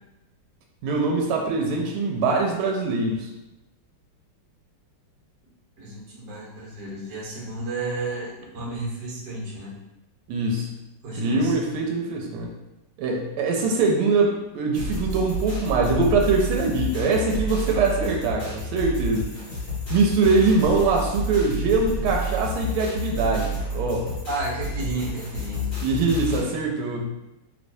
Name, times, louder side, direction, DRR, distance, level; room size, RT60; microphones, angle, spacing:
voice 1, 0.8-3.3 10.3-10.7 11.2-12.5 13.0-19.3 19.9-24.1 25.8-27.1, right 3 dB, 90° right, 0 dB, 1.5 m, -23 dB
voice 2, 5.8-9.7 11.0-11.6 24.3-25.7, right 2 dB, 60° right, -4 dB, 1.5 m, -32 dB
sound 1, 14.7-26.4, left 1 dB, 35° left, 1.1 m, -30 dB
3.1 x 3.0 x 2.6 m, 0.97 s
omnidirectional pair, 2.3 m